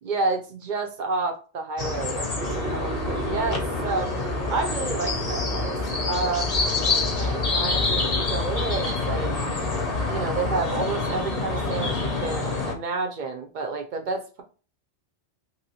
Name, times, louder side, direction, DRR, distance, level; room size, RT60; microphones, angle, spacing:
voice 1, 0.0-4.1 4.5-5.8 6.1-9.3 10.1-14.4, right 4 dB, 55° right, 4 dB, 0.5 m, -30 dB
sound 1, 1.8-12.7, left 3 dB, 40° left, 0.7 m, -26 dB
sound 2, 2.4-9.5, right 4 dB, 85° right, 1.0 m, -38 dB
3.0 x 2.8 x 2.7 m, 0.36 s
omnidirectional pair, 1.2 m